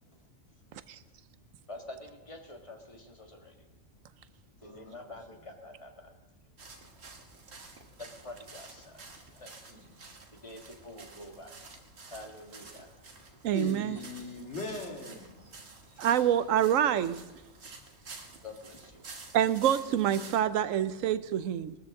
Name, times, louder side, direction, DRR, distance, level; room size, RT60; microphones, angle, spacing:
voice 1, 1.7-3.7 4.6-6.1 8.0-9.0 9.3-9.7 10.4-11.5 12.1-12.9 18.4-19.1, left 2 dB, 25° left, 3 dB, 1.8 m, -47 dB
voice 2, 4.6-5.2 9.7-9.9 13.5-15.3, left 3 dB, 60° left, 0 dB, 2.5 m, -40 dB
sound 1, 6.6-20.4, right 3 dB, 55° right, 1.6 m, -50 dB
voice 3, 13.4-14.0 16.0-17.2 19.3-21.8, right 10 dB, 80° right, 14 dB, 1.0 m, -26 dB
21.0 x 13.5 x 3.7 m, 1.0 s
omnidirectional pair, 1.3 m